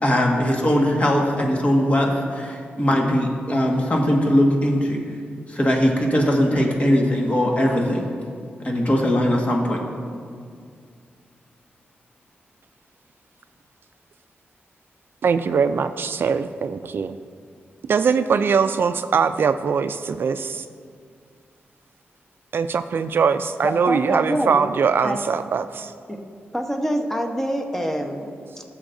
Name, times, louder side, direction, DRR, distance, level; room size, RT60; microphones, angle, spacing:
voice 1, 0.0-5.0 5.5-8.1 8.6-9.8, equal, 35° left, 0 dB, 1.6 m, -20 dB
voice 2, 15.2-17.2 17.9-20.7 22.5-25.9, right 6 dB, 60° right, 11 dB, 0.3 m, -21 dB
voice 3, 23.6-24.6 25.0-25.2 26.1-26.2 26.5-28.6, equal, 10° left, 3 dB, 1.0 m, -26 dB
15.0 x 7.2 x 2.6 m, 2.1 s
cardioid pair, 80°, 4 cm